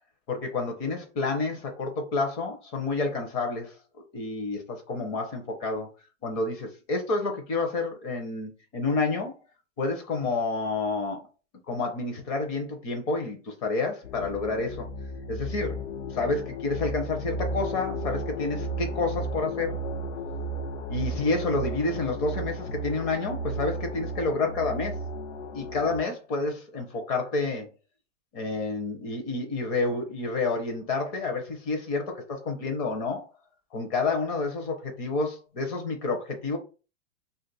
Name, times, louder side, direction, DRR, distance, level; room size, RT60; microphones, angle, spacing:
voice 1, 0.3-3.7 4.1-5.9 6.2-9.3 9.8-11.2 11.7-14.9 15.3-15.8 16.1-19.8 20.9-25.0 25.5-27.7 28.3-33.2 33.7-36.6, left 3 dB, 25° left, 0.7 m, -29 dB
sound 1, 14.0-26.0, right 1 dB, 75° left, 0.7 m, -34 dB
2.5 x 2.5 x 3.9 m
hypercardioid pair, 150°, 38 cm